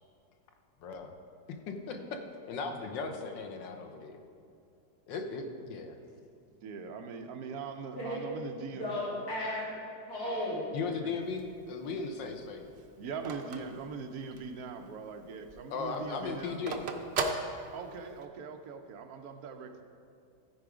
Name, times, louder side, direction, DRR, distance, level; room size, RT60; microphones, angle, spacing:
voice 1, 0.8-1.1 1.7-2.2 2.5-4.2 5.1-6.0 10.7-12.6 15.7-16.8, left 4 dB, 85° left, 5 dB, 1.5 m, -37 dB
voice 2, 6.6-8.9 11.0-11.2 13.0-16.6 17.7-19.8, right 5 dB, 65° right, 6 dB, 1.1 m, -41 dB
voice 3, 8.7-9.7 10.1-10.7, left 1 dB, 55° left, -7 dB, 2.7 m, -34 dB
Telephone, 11.2-14.6 15.0-15.1 15.4-18.2, right 4 dB, 80° right, 0.5 m, -37 dB
14.0 x 4.8 x 4.9 m, 2.5 s
omnidirectional pair, 1.9 m